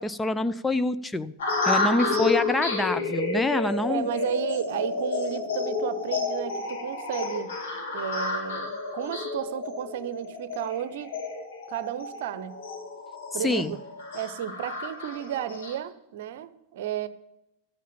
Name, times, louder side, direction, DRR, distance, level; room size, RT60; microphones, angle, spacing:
voice 1, 0.0-1.3 1.6-4.1 13.3-13.7, left 2 dB, 10° left, 11 dB, 0.5 m, -26 dB
sound 1, 1.4-15.7, left 3 dB, 60° left, 5.4 m, -31 dB
voice 2, 1.9-2.4 3.9-7.5 7.9-11.1 11.7-12.6 13.3-13.8 14.1-17.1, right 10 dB, 55° right, 14 dB, 0.8 m, -33 dB
13.5 x 8.4 x 7.2 m, 0.88 s
figure-of-eight pair, 90°, 0 cm